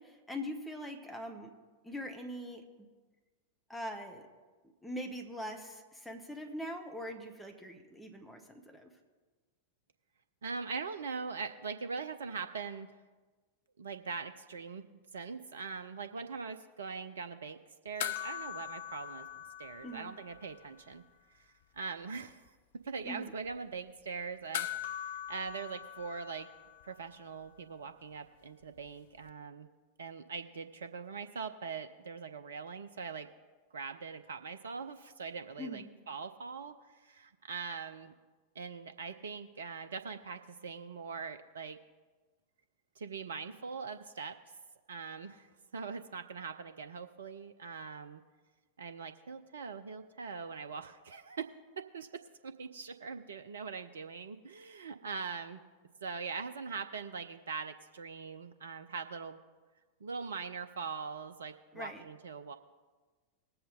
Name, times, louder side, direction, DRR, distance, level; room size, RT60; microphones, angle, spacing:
voice 1, 0.0-1.5 1.8-2.6 3.7-4.3 4.8-8.9 19.8-20.1 23.0-23.3 35.6-35.9 61.7-62.0, equal, 5° left, 3 dB, 1.3 m, -42 dB
voice 2, 10.4-13.0 13.8-14.9 15.1-17.6 17.8-21.0 21.3-22.5 22.8-26.5 26.8-29.7 30.0-33.3 33.7-38.1 38.6-41.8 43.0-44.4 44.9-48.2 48.8-52.1 52.4-55.6 56.0-59.4 60.0-62.6, right 5 dB, 65° right, 9 dB, 0.5 m, -42 dB
sound 1, 18.0-20.7 20.9-21.0 24.5-27.1 29.3-29.4, left 10 dB, 55° left, 0.5 m, -41 dB
19.0 x 7.8 x 3.8 m, 1.3 s
figure-of-eight pair, 90°, 0 cm